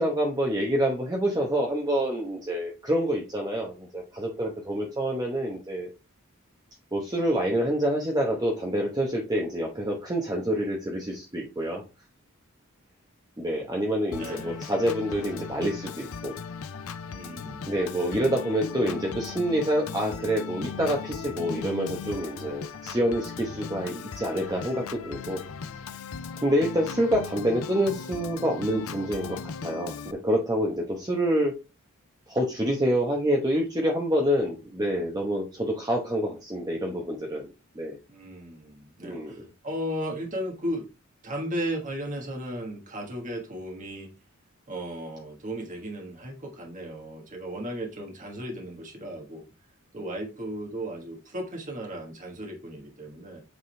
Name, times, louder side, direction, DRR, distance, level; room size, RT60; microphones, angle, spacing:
voice 1, 0.0-5.9 6.9-11.8 13.4-16.4 17.7-25.4 26.4-31.5 32.3-37.5 37.7-38.0 39.0-39.4, equal, 20° right, -1 dB, 0.9 m, -27 dB
Organ, 14.1-30.1, left 6 dB, 80° left, 0.6 m, -38 dB
voice 2, 14.1-14.7 17.1-17.9 38.1-40.9 41.2-44.1 44.7-49.4 49.9-53.4, equal, 35° right, 1 dB, 1.5 m, -35 dB
8.1 x 3.7 x 3.3 m, 0.29 s
head